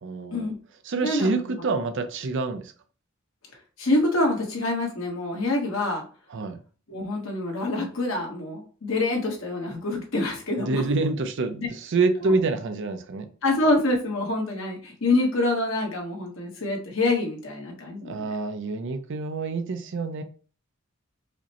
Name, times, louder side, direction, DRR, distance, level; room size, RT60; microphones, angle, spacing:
voice 1, 0.0-0.5 0.8-2.7 6.3-6.6 10.6-13.3 18.0-20.2, right 3 dB, 60° right, 0.5 m, -27 dB
voice 2, 1.0-1.6 3.8-6.0 6.9-10.8 12.2-12.3 13.4-18.3, left 2 dB, 70° left, 1.2 m, -26 dB
4.9 x 2.1 x 2.9 m
head